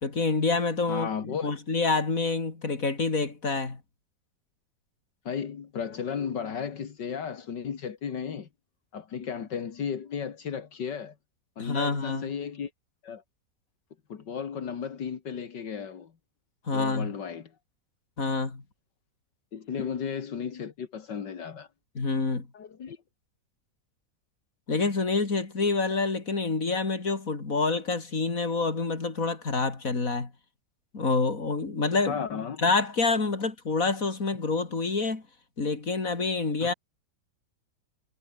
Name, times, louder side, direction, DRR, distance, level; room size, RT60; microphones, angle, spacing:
voice 1, 0.0-3.8 11.6-12.3 16.7-17.1 18.2-18.6 22.0-22.5 24.7-30.3 30.9-32.2 32.6-35.2 35.6-36.7, left 3 dB, 50° left, 3.9 m, -27 dB
voice 2, 0.9-1.6 5.3-8.5 8.9-11.1 11.6-12.7 13.0-13.2 14.1-16.1 16.7-17.5 19.5-21.7 22.5-23.0 32.1-32.6 36.6-36.7, left 7 dB, 80° left, 2.4 m, -34 dB
omnidirectional pair, 1.9 m